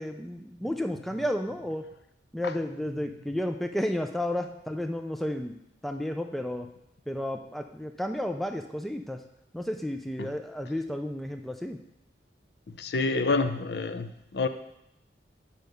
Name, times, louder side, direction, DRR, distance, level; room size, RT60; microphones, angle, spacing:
voice 1, 0.0-1.9 2.3-5.6 5.8-6.7 7.1-9.2 9.5-11.8, left 1 dB, ahead, 5 dB, 0.3 m, -32 dB
voice 2, 12.8-14.5, left 3 dB, 65° left, 10 dB, 0.5 m, -28 dB
6.5 x 5.6 x 5.2 m, 0.82 s
head